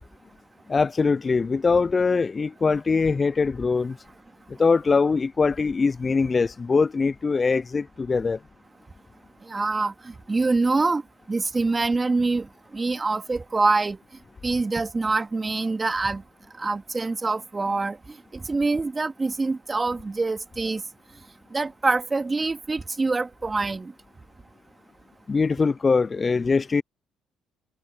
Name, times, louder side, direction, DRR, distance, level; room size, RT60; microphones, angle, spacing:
voice 1, 0.7-4.0 4.5-8.4 25.3-26.8, left 4 dB, 35° left, 0.4 m, -22 dB
voice 2, 9.5-11.0 11.3-12.5 12.7-14.0 14.4-16.2 16.6-18.0 18.3-20.8 21.5-23.9, right 3 dB, 25° right, 2.1 m, -25 dB
hypercardioid pair, 55°, 0 cm